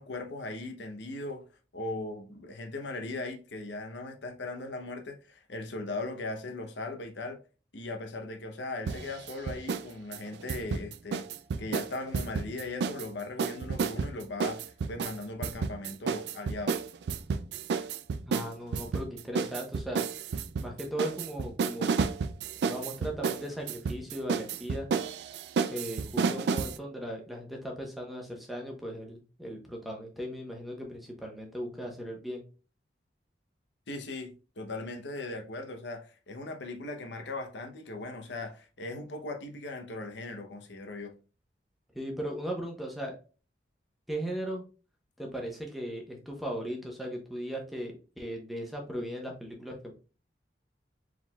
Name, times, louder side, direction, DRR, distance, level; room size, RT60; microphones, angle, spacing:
voice 1, 0.0-1.4 1.7-7.4 7.7-11.3 11.6-16.8 33.9-41.1, left 2 dB, 85° left, 0.8 m, -38 dB
sound 1, 8.9-9.9 10.1-13.1 13.4-26.8, right 5 dB, 70° right, 0.3 m, -31 dB
voice 2, 18.3-20.0 20.6-22.0 22.6-24.9 25.7-32.4 41.9-43.2 44.1-44.6 45.2-49.9, equal, ahead, 0.9 m, -37 dB
4.7 x 3.8 x 2.3 m
head